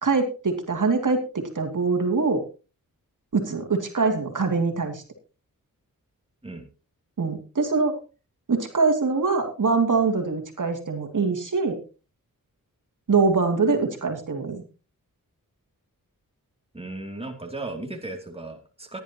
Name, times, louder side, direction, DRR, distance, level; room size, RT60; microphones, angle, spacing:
voice 1, 0.0-2.4 3.3-5.0 7.2-8.0 8.5-11.8 13.1-14.6, right 4 dB, 60° right, 4 dB, 2.6 m, -23 dB
voice 2, 16.7-19.0, right 2 dB, 15° right, 3 dB, 2.8 m, -36 dB
17.5 x 11.0 x 2.9 m, 0.33 s
cardioid pair, 60°, 35 cm